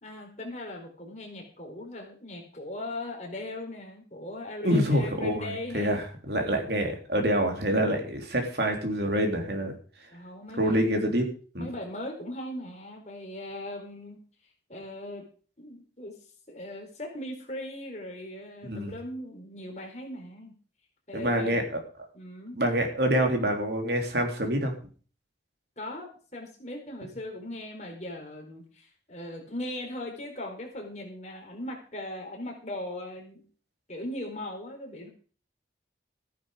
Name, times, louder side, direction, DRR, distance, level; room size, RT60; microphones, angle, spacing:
voice 1, 0.0-6.0 10.1-10.8 11.6-14.2 14.7-15.3 15.6-16.2 16.5-20.5 21.1-21.5 22.1-22.6 25.8-33.4 33.9-35.1, left 1 dB, 40° left, 1 dB, 4.2 m, -39 dB
voice 2, 4.6-9.8 10.6-11.3 11.5-11.7 18.6-18.9 21.1-21.6 22.6-24.8, equal, 65° right, 3 dB, 3.4 m, -26 dB
14.0 x 10.5 x 5.0 m, 0.41 s
head